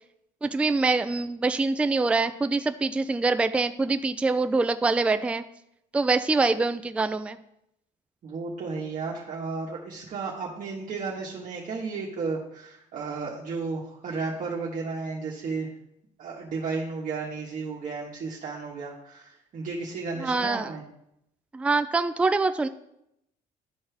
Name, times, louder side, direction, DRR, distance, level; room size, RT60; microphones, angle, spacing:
voice 1, 0.4-5.4 5.9-7.4 20.2-20.7 21.5-22.7, right 3 dB, 5° right, 10 dB, 0.3 m, -24 dB
voice 2, 8.2-15.7 16.2-20.8, right 4 dB, 50° right, -4 dB, 1.4 m, -33 dB
12.5 x 4.3 x 3.4 m, 0.79 s
cardioid pair, 110°, 17 cm